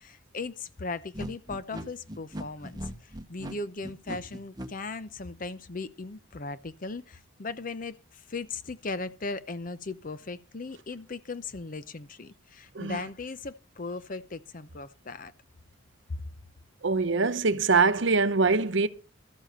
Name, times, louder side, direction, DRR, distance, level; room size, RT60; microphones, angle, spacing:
voice 1, 0.0-15.3 16.1-16.2, left 3 dB, 45° left, 0.7 m, -38 dB
sound 1, 1.1-4.7, equal, 20° right, 1.1 m, -38 dB
voice 2, 16.8-18.9, right 4 dB, 70° right, 0.9 m, -23 dB
13.0 x 7.5 x 6.7 m
head